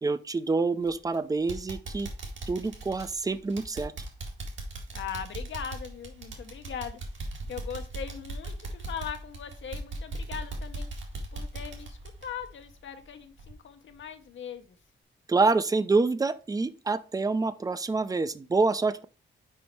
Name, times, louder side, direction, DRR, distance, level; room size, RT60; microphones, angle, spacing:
voice 1, 0.0-2.1 2.5-3.9 15.3-19.0, right 3 dB, 20° right, 0.4 m, -27 dB
sound 1, 0.8-1.1 1.5-13.1 13.4-13.5 14.0-14.1, right 2 dB, 75° right, 2.0 m, -39 dB
voice 2, 4.9-7.0 7.5-10.9 11.3-14.8, left 8 dB, 80° left, 1.0 m, -40 dB
5.5 x 5.2 x 4.5 m
wide cardioid pair, 155°, 20 cm